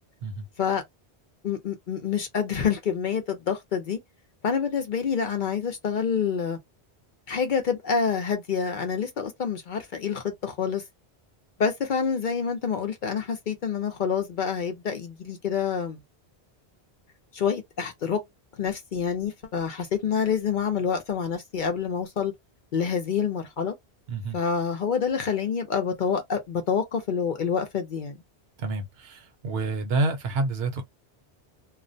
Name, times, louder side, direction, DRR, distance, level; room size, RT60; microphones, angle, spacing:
voice 1, 1.4-4.0 4.4-6.6 7.3-10.8 11.6-16.0 17.3-18.2 18.6-22.3 22.7-23.7 24.3-28.2, left 6 dB, 55° left, 0.6 m, -27 dB
voice 2, 28.6-30.8, right 3 dB, 70° right, 0.9 m, -28 dB
2.4 x 2.1 x 2.5 m
omnidirectional pair, 1.1 m